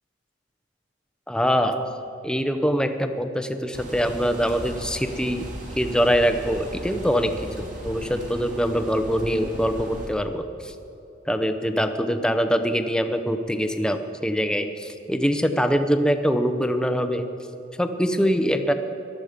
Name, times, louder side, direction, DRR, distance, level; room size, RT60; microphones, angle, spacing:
voice 1, 1.3-5.4 5.8-10.7 11.3-17.3 17.8-18.7, equal, 5° left, 8 dB, 0.7 m, -24 dB
sound 1, 3.7-10.1, equal, 40° right, 2.8 m, -37 dB
18.0 x 12.5 x 5.1 m, 3.0 s
head